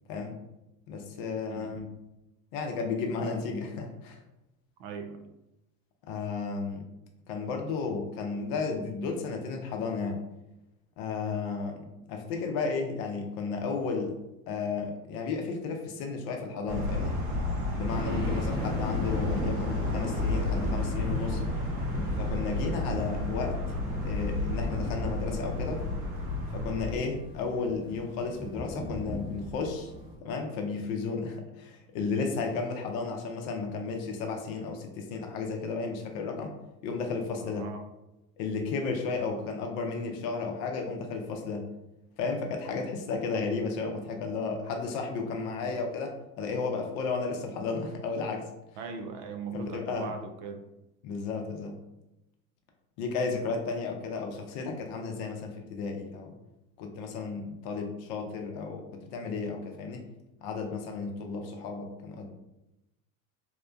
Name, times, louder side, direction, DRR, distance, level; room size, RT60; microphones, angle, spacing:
voice 1, 0.9-1.8 2.5-4.2 6.1-6.8 7.3-10.2 11.0-14.2 14.5-17.2 17.7-21.4 22.2-23.6 24.0-25.8 26.5-29.9 30.2-36.5 36.8-37.7 38.4-41.6 42.2-48.5 49.5-50.1 51.0-51.8 53.0-56.3 56.8-60.0 60.4-62.3, left 4 dB, 55° left, 3 dB, 0.6 m, -33 dB
voice 2, 4.8-5.3 18.0-18.5 37.4-37.8 45.4-45.7 47.5-47.6 48.8-50.7, right 4 dB, 55° right, 5 dB, 0.5 m, -40 dB
sound 1, 16.7-26.9, left 2 dB, 80° right, 0.9 m, -31 dB
sound 2, 17.9-30.1, equal, 10° right, 0.9 m, -38 dB
2.8 x 2.1 x 2.5 m, 0.92 s
hypercardioid pair, 85°, 43 cm